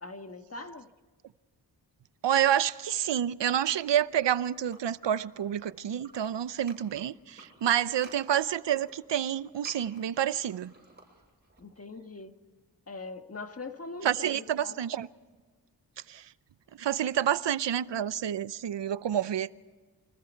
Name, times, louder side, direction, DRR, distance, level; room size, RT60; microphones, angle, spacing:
voice 1, 0.0-0.9 11.6-12.3 12.9-14.8, left 3 dB, 35° left, 1.6 m, -42 dB
voice 2, 2.2-10.7 14.0-15.1 16.1-16.3 16.8-19.5, right 10 dB, 80° right, 0.8 m, -28 dB
sound 1, 4.2-5.7 6.0-11.6, right 2 dB, 25° right, 7.4 m, -53 dB
28.5 x 25.0 x 4.6 m
wide cardioid pair, 105°, 42 cm